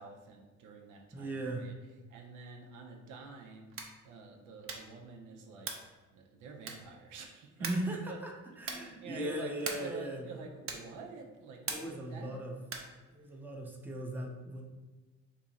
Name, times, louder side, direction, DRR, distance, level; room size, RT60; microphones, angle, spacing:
voice 1, 0.0-1.7 2.1-7.7 8.1-8.2 8.5-12.5 13.3-13.4, right 4 dB, 85° right, 2 dB, 0.6 m, -48 dB
voice 2, 1.1-1.7 7.6-8.3 8.6-10.2 11.7-12.5 13.1-14.6, right 1 dB, 5° right, 0 dB, 0.6 m, -38 dB
sound 1, 3.7-4.0 4.6-5.0 5.6-6.0 6.6-7.0 7.6-8.0 8.6-9.0 9.6-10.0 10.6-11.0 11.6-12.1 12.6-13.0, right 5 dB, 45° right, 0.6 m, -41 dB
2.9 x 2.4 x 4.0 m, 1.2 s
cardioid pair, 90°, 30 cm